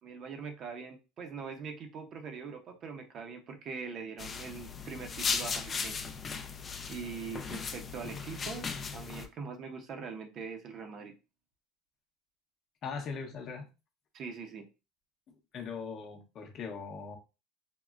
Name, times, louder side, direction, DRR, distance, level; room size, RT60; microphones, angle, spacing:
voice 1, 0.0-6.0 6.9-8.6 8.9-11.1 14.1-14.6, right 5 dB, 40° right, 0.6 m, -42 dB
sound 1, 4.2-9.3, left 5 dB, 25° left, 0.4 m, -37 dB
voice 2, 12.8-13.7 15.3-17.2, left 5 dB, 40° left, 0.8 m, -40 dB
3.5 x 2.1 x 2.4 m
cardioid pair, 140°, 0 cm